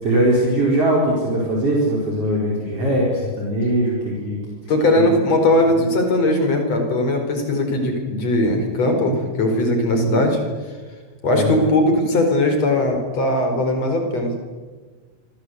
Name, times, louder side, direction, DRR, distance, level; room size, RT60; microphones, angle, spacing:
voice 1, 0.0-4.4 5.8-5.9 9.9-10.2 11.3-11.5, right 1 dB, 40° right, -3 dB, 5.8 m, -20 dB
voice 2, 4.7-10.4 11.2-14.4, left 1 dB, 45° left, 5 dB, 5.5 m, -19 dB
27.0 x 25.0 x 8.2 m, 1.4 s
omnidirectional pair, 4.4 m